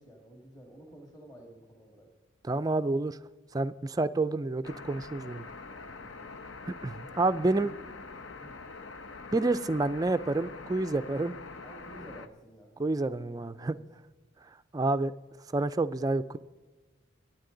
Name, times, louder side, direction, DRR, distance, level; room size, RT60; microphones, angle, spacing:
voice 1, 0.0-2.1 5.7-6.3 7.6-7.8 8.4-8.6 11.6-13.8, right 1 dB, 20° left, 1 dB, 1.9 m, -52 dB
voice 2, 2.4-3.2 3.5-5.5 6.8-7.7 9.3-11.3 12.8-13.7 14.7-15.1 15.5-16.4, right 2 dB, 20° right, 11 dB, 0.4 m, -28 dB
sound 1, 4.6-12.3, left 3 dB, 65° left, 0.8 m, -45 dB
23.0 x 9.1 x 3.9 m, 1.2 s
head